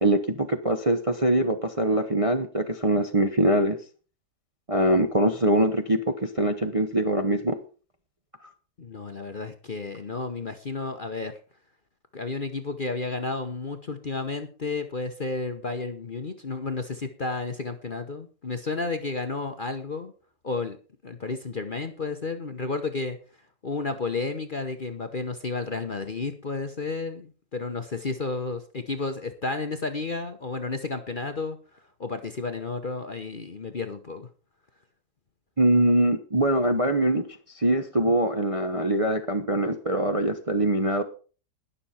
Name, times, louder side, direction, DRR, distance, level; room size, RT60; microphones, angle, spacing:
voice 1, 0.0-3.8 4.7-7.6 8.4-8.5 35.6-37.3 37.5-41.0, right 1 dB, 25° right, 4 dB, 0.8 m, -23 dB
voice 2, 8.8-11.4 12.1-20.1 20.4-20.8 21.0-23.2 23.6-31.6 32.0-34.3, left 3 dB, 35° left, 7 dB, 1.0 m, -32 dB
20.0 x 6.8 x 4.3 m, 0.38 s
omnidirectional pair, 1.9 m